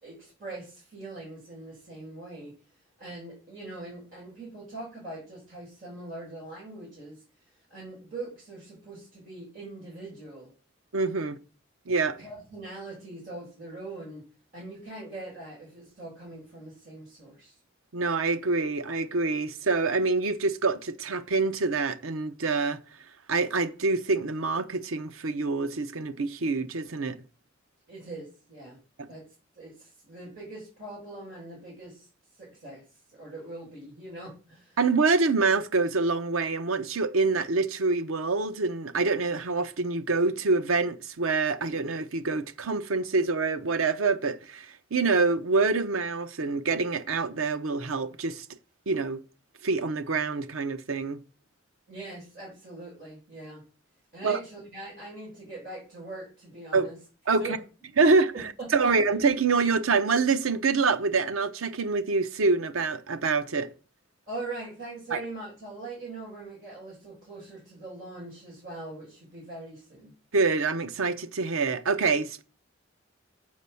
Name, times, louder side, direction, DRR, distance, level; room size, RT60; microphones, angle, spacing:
voice 1, 0.0-2.5 3.0-7.2 7.7-10.5 12.2-14.2 14.5-17.5 27.9-28.8 29.1-29.2 29.5-32.1 32.4-32.8 33.1-34.8 51.9-53.6 54.1-57.0 57.4-57.6 58.6-58.9 64.3-70.1, right 2 dB, 45° right, 4.9 m, -42 dB
voice 2, 10.9-11.4 11.9-12.2 17.9-22.8 23.3-27.2 29.0-29.1 34.8-48.5 48.9-49.2 49.6-51.2 54.2-54.4 56.7-56.9 57.3-57.4 58.0-63.7 65.1-65.2 70.3-72.4, right 4 dB, 85° right, 0.8 m, -26 dB
7.6 x 4.8 x 6.9 m
head